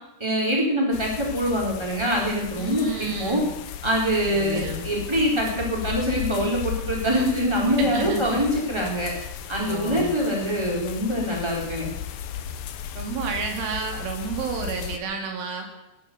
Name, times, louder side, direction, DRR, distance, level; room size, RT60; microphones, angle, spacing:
voice 1, 0.2-3.4 3.8-9.1 9.5-11.9, equal, 5° right, -2 dB, 3.7 m, -24 dB
sound 1, 0.9-15.0, left 9 dB, 80° left, 2.0 m, -35 dB
voice 2, 2.6-3.5 4.3-4.9 7.7-8.4 9.7-10.1 13.0-15.7, right 5 dB, 85° right, 3 dB, 5.1 m, -31 dB
19.5 x 10.5 x 7.1 m, 0.91 s
omnidirectional pair, 5.4 m